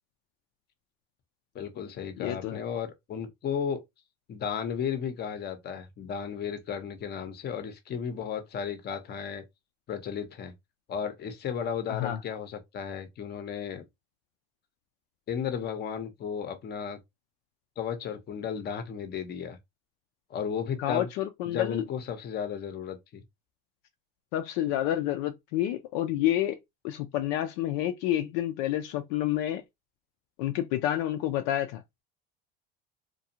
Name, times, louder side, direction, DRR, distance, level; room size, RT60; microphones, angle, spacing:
voice 1, 1.5-3.8 4.3-9.4 9.9-10.5 10.9-13.8 15.3-17.0 17.8-19.6 20.3-21.1 21.4-23.2, left 7 dB, 35° left, 0.7 m, -34 dB
voice 2, 2.2-2.6 11.9-12.2 20.8-21.8 24.3-26.6 26.8-29.6 30.4-31.8, left 12 dB, 65° left, 0.5 m, -29 dB
2.4 x 2.3 x 2.7 m
supercardioid pair, 105°, 29 cm